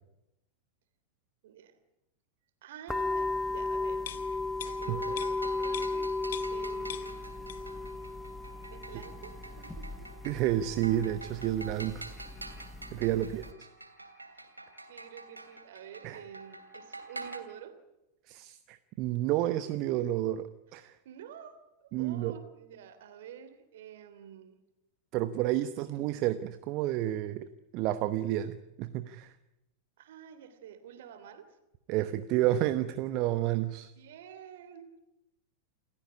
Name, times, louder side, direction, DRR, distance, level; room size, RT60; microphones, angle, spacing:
voice 1, 1.4-1.8 2.6-4.1 4.7-6.1 6.5-7.2 8.7-10.1 13.0-13.5 14.3-14.5 14.9-17.7 21.0-24.6 25.9-26.2 30.0-31.5 34.0-35.0, right 8 dB, 55° right, 11 dB, 3.0 m, -49 dB
sound 1, 2.9-13.5, left 3 dB, 5° left, 1.4 m, -36 dB
sound 2, 4.0-6.6 6.9-7.9 8.2-8.3, left 11 dB, 60° left, 1.4 m, -44 dB
voice 2, 4.6-5.0 10.2-12.0 12.9-13.4 16.0-16.2 18.3-21.0 21.9-22.3 25.1-27.5 27.7-29.4 31.9-33.9, right 13 dB, 40° right, 12 dB, 1.0 m, -30 dB
sound 3, 4.7-17.4, right 2 dB, 85° right, 2.6 m, -47 dB
28.0 x 15.0 x 10.0 m, 0.93 s
figure-of-eight pair, 90°, 0 cm